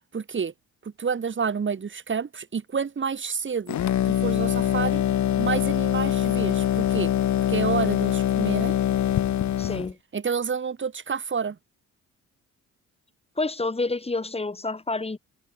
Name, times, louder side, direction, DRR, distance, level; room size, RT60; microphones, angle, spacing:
voice 1, 0.1-0.5 0.8-3.8 4.0-5.0 5.4-7.1 7.5-8.7 10.1-11.6, right 6 dB, 40° right, 5.1 m, -29 dB
sound 1, 3.7-9.9, left 11 dB, 70° left, 5.4 m, -23 dB
voice 2, 9.6-10.0 13.4-15.2, left 3 dB, 20° left, 4.8 m, -28 dB
cardioid pair, 90°, 30 cm